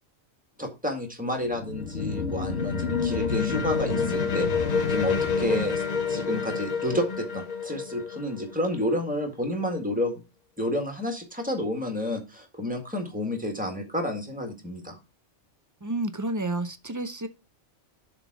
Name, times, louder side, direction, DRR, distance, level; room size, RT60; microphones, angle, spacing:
voice 1, 0.6-4.5 4.9-5.8 6.1-10.2 10.6-15.0, left 1 dB, 5° right, 1.7 m, -30 dB
sound 1, 1.4-6.4, left 5 dB, 80° left, 1.4 m, -31 dB
sound 2, 1.6-9.2, left 5 dB, 40° left, 0.7 m, -30 dB
voice 2, 15.8-17.3, right 2 dB, 30° right, 0.3 m, -30 dB
7.0 x 3.8 x 5.9 m
omnidirectional pair, 1.2 m